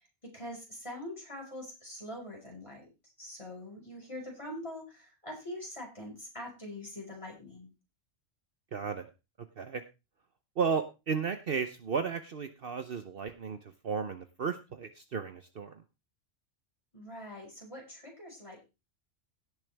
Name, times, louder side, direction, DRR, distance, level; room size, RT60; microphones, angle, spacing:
voice 1, 0.2-2.9 3.2-7.7 16.9-18.6, left 1 dB, 25° left, -1 dB, 5.4 m, -43 dB
voice 2, 8.7-9.1 9.6-9.8 10.6-15.8, right 6 dB, 55° right, 9 dB, 1.0 m, -34 dB
17.0 x 6.9 x 3.4 m, 0.28 s
omnidirectional pair, 1.3 m